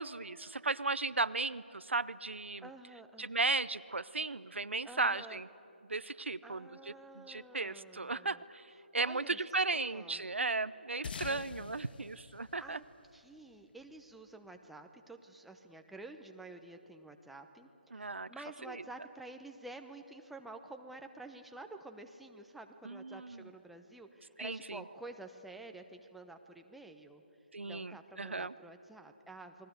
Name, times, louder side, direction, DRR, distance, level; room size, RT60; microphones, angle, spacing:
voice 1, 0.0-2.7 3.2-5.5 5.9-6.7 7.1-8.6 8.9-12.8 17.9-18.3 18.7-18.8 22.9-23.4 24.4-24.8 27.5-28.5, right 3 dB, 85° right, 15 dB, 0.8 m, -35 dB
voice 2, 2.6-3.3 4.8-5.4 6.4-8.4 9.0-9.4 9.7-10.2 11.3-11.4 12.6-12.8 13.1-27.2 27.6-29.7, right 2 dB, ahead, 5 dB, 0.9 m, -50 dB
sound 1, 11.0-13.8, left 6 dB, 55° left, 0.6 m, -46 dB
29.5 x 21.0 x 8.1 m, 2.9 s
figure-of-eight pair, 150°, 6 cm